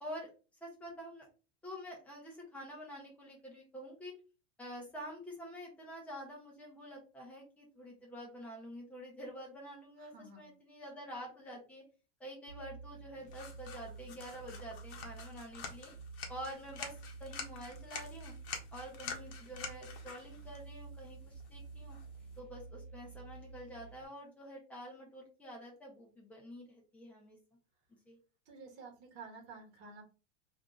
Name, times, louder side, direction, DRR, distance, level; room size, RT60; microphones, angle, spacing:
voice 1, 0.6-1.3 1.6-4.1 4.6-11.8 12.2-15.9 16.3-18.3 18.7-22.0 22.4-27.4 28.1-28.2, equal, 5° left, -2 dB, 0.5 m, -48 dB
voice 2, 10.0-10.5 28.4-30.0, right 4 dB, 45° right, 0 dB, 1.2 m, -51 dB
sound 1, 12.5-24.0, right 4 dB, 70° right, 0.9 m, -50 dB
sound 2, 13.3-22.4, left 6 dB, 55° left, 0.8 m, -48 dB
2.8 x 2.6 x 3.5 m, 0.33 s
supercardioid pair, 175°, 36 cm